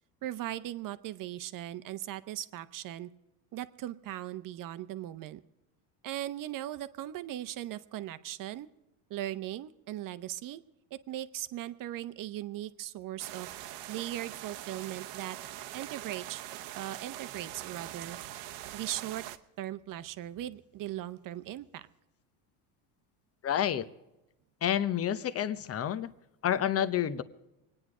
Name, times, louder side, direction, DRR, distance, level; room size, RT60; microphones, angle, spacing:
voice 1, 0.2-3.1 3.5-5.4 6.0-8.7 9.1-10.6 10.9-13.5 13.9-15.4 15.7-16.4 16.7-18.2 18.7-19.3 19.6-21.9, right 13 dB, 45° right, 13 dB, 0.9 m, -38 dB
sound 1, 13.2-19.4, right 13 dB, 80° right, 1.1 m, -43 dB
voice 2, 23.4-23.9 24.6-26.1 26.4-27.2, left 10 dB, 30° left, 13 dB, 0.9 m, -29 dB
24.5 x 9.8 x 4.9 m, 0.93 s
cardioid pair, 125°, 46 cm